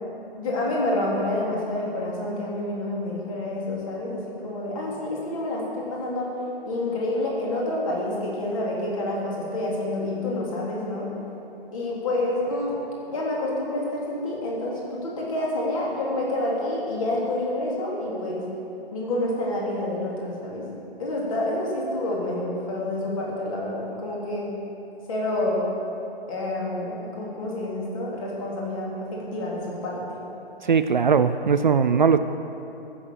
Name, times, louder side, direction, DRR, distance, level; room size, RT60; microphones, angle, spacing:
voice 1, 0.4-6.3 6.6-11.1 11.7-12.7 13.1-18.4 18.9-20.6 21.0-24.5 25.1-25.6 26.3-30.2, left 1 dB, 35° left, -4 dB, 3.1 m, -28 dB
voice 2, 30.6-32.2, right 6 dB, 50° right, 10 dB, 0.5 m, -19 dB
15.0 x 7.1 x 7.6 m, 2.9 s
figure-of-eight pair, 135°, 31 cm